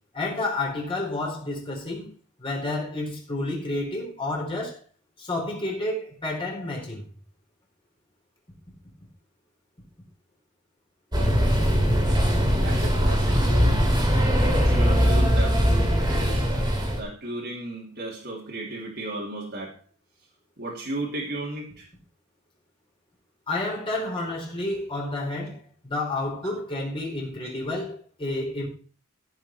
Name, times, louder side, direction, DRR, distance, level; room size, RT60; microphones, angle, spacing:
voice 1, 0.1-2.1 2.4-4.8 5.2-7.0 23.5-25.6 25.8-28.7, left 2 dB, 25° left, 4.2 m, -30 dB
sound 1, 11.1-17.0, equal, 20° right, 3.3 m, -21 dB
voice 2, 12.6-13.9 14.6-15.7 16.0-16.5 17.0-19.7 20.6-21.8 26.4-26.5, right 2 dB, 50° right, 2.8 m, -34 dB
15.0 x 7.2 x 4.4 m
head